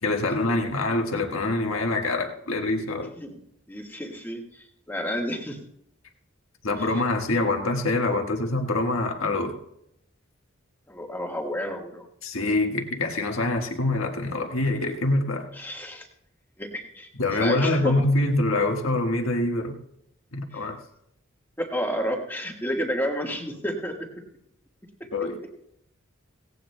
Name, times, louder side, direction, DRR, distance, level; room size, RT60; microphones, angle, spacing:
voice 1, 0.0-3.1 6.6-9.5 12.2-15.5 17.2-19.8 20.3-20.8 25.1-25.4, left 2 dB, 70° left, 2 dB, 1.5 m, -25 dB
voice 2, 3.7-5.6 6.8-6.9 10.9-12.1 15.5-16.1 16.6-17.9 20.5-20.6 21.6-23.9, equal, 10° left, 1 dB, 1.4 m, -31 dB
17.5 x 17.5 x 2.2 m, 0.77 s
head